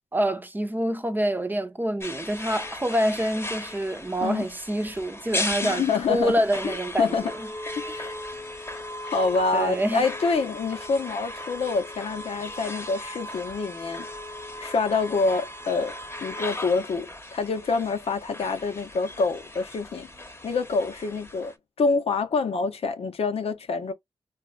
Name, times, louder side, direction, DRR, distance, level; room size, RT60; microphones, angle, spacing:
voice 1, 0.1-7.5 7.8-7.9 9.5-10.1, right 1 dB, 20° right, 0.7 m, -27 dB
sound 1, 2.0-21.6, left 1 dB, 25° left, 1.1 m, -37 dB
voice 2, 5.6-6.3 6.6-7.3 7.8-8.2 8.6-14.1 14.6-20.1 20.4-21.5 21.8-23.9, left 4 dB, 80° left, 0.9 m, -26 dB
3.5 x 2.4 x 2.4 m
cardioid pair, 65°, 10 cm